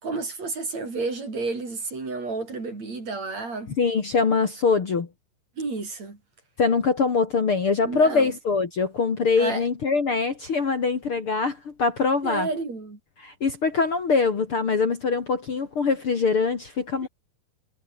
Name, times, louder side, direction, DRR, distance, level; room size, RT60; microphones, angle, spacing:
voice 1, 0.0-3.7 5.6-6.2 7.8-8.3 9.4-9.6 12.2-13.0 17.0-17.1, right 3 dB, 45° right, 7.4 m, -31 dB
voice 2, 3.8-5.1 6.6-12.5 13.2-17.1, left 4 dB, 40° left, 2.8 m, -23 dB
omnidirectional pair, 4.1 m